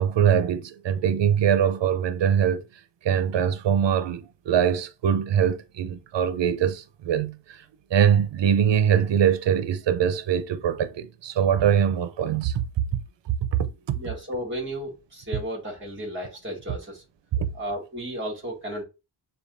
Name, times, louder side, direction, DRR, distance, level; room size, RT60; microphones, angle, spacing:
voice 1, 0.0-2.6 3.0-7.6 7.9-12.6 13.9-14.0 17.4-17.5, right 8 dB, 75° right, 0.6 m, -22 dB
voice 2, 14.0-17.0 17.5-18.8, equal, 25° right, 2.2 m, -33 dB
6.6 x 2.4 x 2.6 m
cardioid pair, 55°, 43 cm